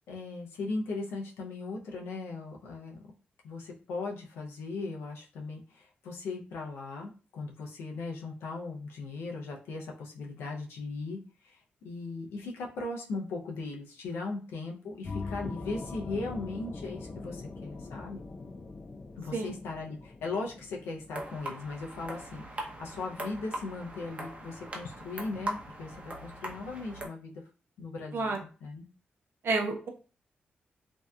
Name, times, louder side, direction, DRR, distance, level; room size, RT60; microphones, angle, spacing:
voice 1, 0.1-3.0 3.4-18.2 19.2-27.4 27.8-28.9, left 3 dB, 85° left, 0 dB, 0.6 m, -38 dB
sound 1, 15.0-23.3, left 3 dB, 40° left, 0.4 m, -43 dB
sound 2, 21.1-27.1, right 1 dB, 30° right, 0.7 m, -40 dB
voice 2, 29.4-29.9, right 3 dB, 70° right, 3 dB, 0.6 m, -30 dB
2.6 x 2.1 x 2.3 m, 0.36 s
supercardioid pair, 50°, 4 cm